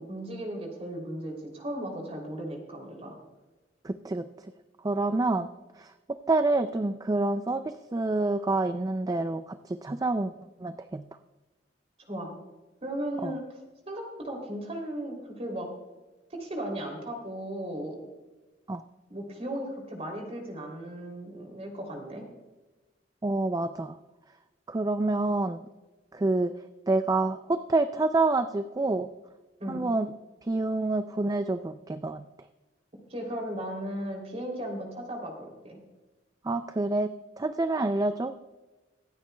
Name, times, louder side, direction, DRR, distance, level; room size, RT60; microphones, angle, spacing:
voice 1, 0.0-3.1 12.1-12.3 12.8-13.4 13.9-15.7 16.3-18.0 19.1-22.2 29.6-29.8 33.1-35.8, right 1 dB, 35° right, 2 dB, 3.1 m, -36 dB
voice 2, 3.8-4.2 4.8-5.5 5.8-10.3 10.6-11.0 13.2-13.4 18.7-18.8 23.2-24.0 24.7-25.6 26.1-26.5 26.9-29.1 29.7-30.1 30.4-32.2 36.4-38.3, right 2 dB, 20° right, 10 dB, 0.4 m, -27 dB
25.0 x 9.2 x 2.3 m, 1.1 s
head